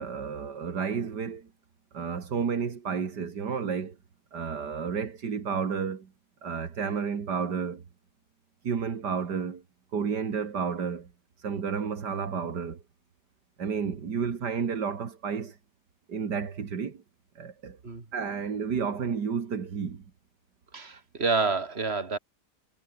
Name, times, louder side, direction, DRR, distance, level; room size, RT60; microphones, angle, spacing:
voice 1, 0.0-1.5 1.9-4.0 4.3-6.1 6.4-7.8 8.6-9.6 9.9-11.1 11.4-12.8 13.6-15.6 16.1-17.0 17.4-17.8 18.1-20.0, right 6 dB, 80° right, 2.6 m, -31 dB
voice 2, 20.7-22.2, right 4 dB, 35° right, 3.1 m, -28 dB
omnidirectional pair, 1.8 m